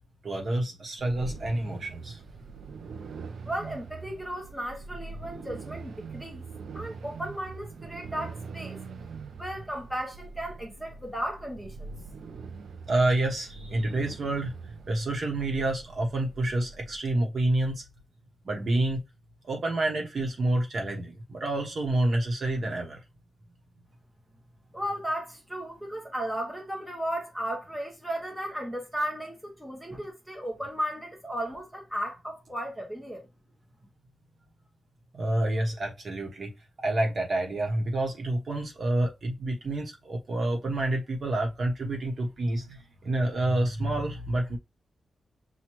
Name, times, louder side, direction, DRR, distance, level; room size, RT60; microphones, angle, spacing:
voice 1, 0.2-2.2 12.9-14.5 14.9-17.8 18.4-19.0 19.5-23.0 35.1-44.6, right 1 dB, 45° right, 0.9 m, -28 dB
sound 1, 1.0-17.0, right 4 dB, 65° right, 0.4 m, -43 dB
voice 2, 3.4-6.4 6.7-8.8 9.4-11.9 24.7-33.3, equal, ahead, 0.9 m, -35 dB
5.9 x 2.2 x 3.0 m
wide cardioid pair, 165°, 0 cm